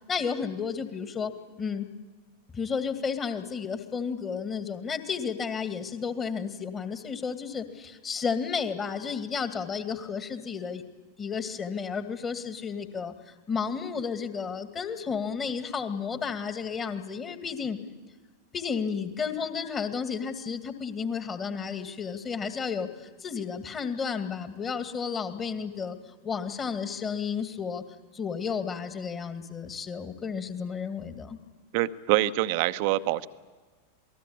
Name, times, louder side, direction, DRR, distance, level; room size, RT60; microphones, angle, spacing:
voice 1, 0.1-1.9 2.5-10.8 11.2-17.8 18.5-26.0 26.2-27.8 28.1-31.4, left 6 dB, 20° left, 9 dB, 2.3 m, -32 dB
voice 2, 31.7-33.3, right 16 dB, 45° right, 12 dB, 1.0 m, -25 dB
27.5 x 19.5 x 8.6 m, 1.4 s
figure-of-eight pair, 90°, 0 cm